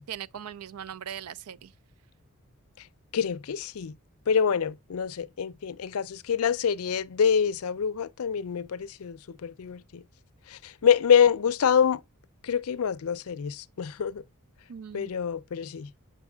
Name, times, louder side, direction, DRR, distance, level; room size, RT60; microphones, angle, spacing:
voice 1, 0.1-1.7 14.7-15.1, right 9 dB, 80° right, 0.4 m, -39 dB
voice 2, 3.1-3.9 4.3-10.0 10.5-12.0 12.4-14.2 14.9-15.9, left 7 dB, 70° left, 0.4 m, -26 dB
8.0 x 5.5 x 2.2 m
head